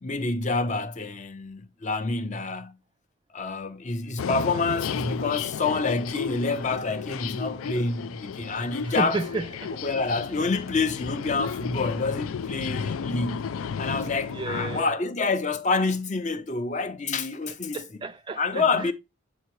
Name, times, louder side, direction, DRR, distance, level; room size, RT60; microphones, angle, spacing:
voice 1, 0.0-2.8 3.3-9.2 9.8-13.4 13.8-17.8 18.4-18.9, left 3 dB, 35° left, 0.6 m, -27 dB
sound 1, 4.2-14.8, left 6 dB, 80° left, 0.4 m, -33 dB
voice 2, 8.8-9.7 14.3-14.9 17.7-18.9, right 3 dB, 25° right, 0.3 m, -32 dB
7.9 x 4.4 x 3.1 m
head